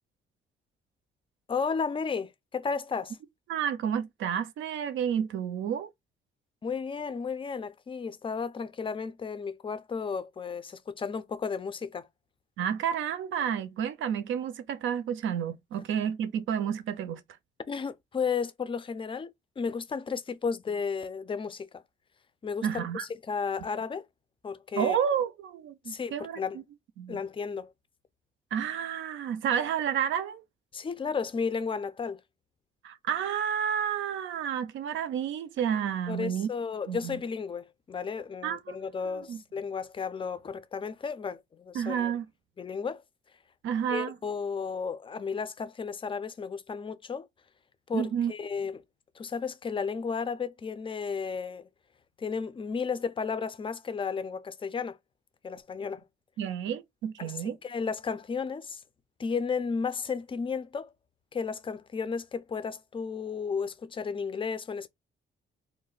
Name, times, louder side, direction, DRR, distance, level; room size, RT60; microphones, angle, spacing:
voice 1, 1.5-3.2 6.6-12.1 17.7-19.3 19.6-21.8 22.4-24.0 24.4-25.0 25.9-26.6 27.1-27.7 30.7-32.2 36.1-42.1 42.6-43.0 43.9-47.3 47.9-48.8 49.2-51.7 52.2-55.0 55.4-56.0 57.2-58.8 59.2-60.9 61.3-64.9, left 5 dB, 25° left, 0.4 m, -33 dB
voice 2, 3.5-5.9 12.6-17.2 22.6-23.0 24.8-26.4 27.0-27.2 28.5-30.4 32.8-36.5 36.9-37.2 38.4-38.7 39.1-39.4 41.7-42.3 43.6-44.2 47.9-48.3 56.4-57.6, right 8 dB, 75° right, 0.5 m, -30 dB
2.3 x 2.1 x 3.8 m
cardioid pair, 90°, 20 cm